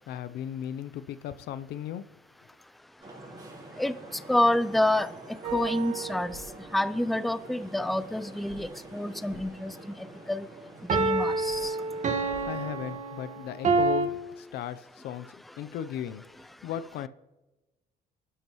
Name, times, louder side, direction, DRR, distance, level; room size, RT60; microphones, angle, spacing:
voice 1, 0.1-2.0 12.5-15.3 15.6-16.2 16.6-17.1, left 10 dB, 75° left, 0.7 m, -36 dB
Vehicle horn car horn honking / Traffic noise roadway noise, 3.0-13.0, right 2 dB, 25° right, 4.8 m, -47 dB
voice 2, 4.3-5.1 5.5-6.3 6.7-9.7 10.3-10.5 10.9-11.7, left 1 dB, ahead, 0.5 m, -27 dB
sound 1, 5.4-6.5 10.9-14.1, right 3 dB, 45° right, 1.6 m, -28 dB
sound 2, 5.5-5.6 6.3-6.4 8.5-8.6 9.3-9.4 11.5-11.6 12.3-12.4, left 2 dB, 55° left, 4.3 m, -48 dB
26.5 x 12.5 x 3.1 m
cardioid pair, 110°, 17 cm